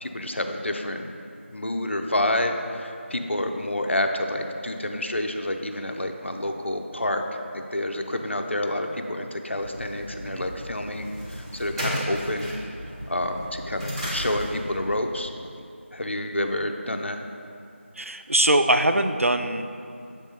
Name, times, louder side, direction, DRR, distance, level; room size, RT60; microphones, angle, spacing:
voice 1, 0.0-1.2 1.5-7.2 7.5-12.5 13.1-15.7 15.9-17.2, left 1 dB, 60° left, 5 dB, 0.5 m, -28 dB
sound 1, 9.6-14.8, equal, 25° right, 1.1 m, -34 dB
voice 2, 18.0-19.7, right 1 dB, 85° right, 8 dB, 0.4 m, -22 dB
7.5 x 3.6 x 3.9 m, 2.5 s
figure-of-eight pair, 170°, 7 cm